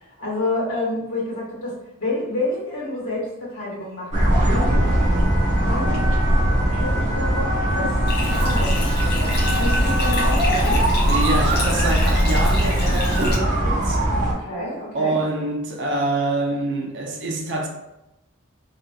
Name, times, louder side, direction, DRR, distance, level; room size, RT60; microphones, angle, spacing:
voice 1, 0.0-4.9 5.6-6.1 6.7-8.0 8.3-10.8 14.4-15.2, left 2 dB, 90° left, 1.2 m, -29 dB
sound 1, 4.1-14.3, right 1 dB, 35° right, 1.1 m, -20 dB
Bathtub (filling or washing), 8.1-13.4, left 1 dB, 45° left, 0.6 m, -25 dB
voice 2, 11.1-14.0 14.9-17.7, right 2 dB, 55° right, 0.5 m, -25 dB
3.9 x 2.4 x 2.3 m
head